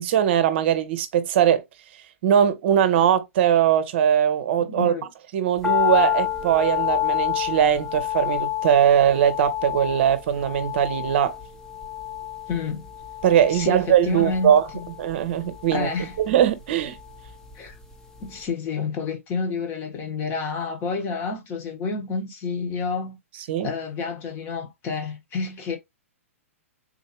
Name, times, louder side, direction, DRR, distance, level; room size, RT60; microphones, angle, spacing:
voice 1, 0.0-1.6 2.2-4.9 5.3-11.4 13.2-14.6 15.0-15.9 16.2-17.0 23.5-23.7, right 9 dB, 50° right, 0.7 m, -20 dB
voice 2, 4.6-5.1 12.5-12.9 13.5-14.9 15.7-16.2 17.5-17.8 18.2-23.2 23.6-25.8, left 4 dB, 30° left, 1.3 m, -29 dB
sound 1, 5.6-17.9 18.2-18.3, left 12 dB, 5° left, 0.8 m, -29 dB
3.9 x 2.8 x 2.9 m
hypercardioid pair, 120°, 8 cm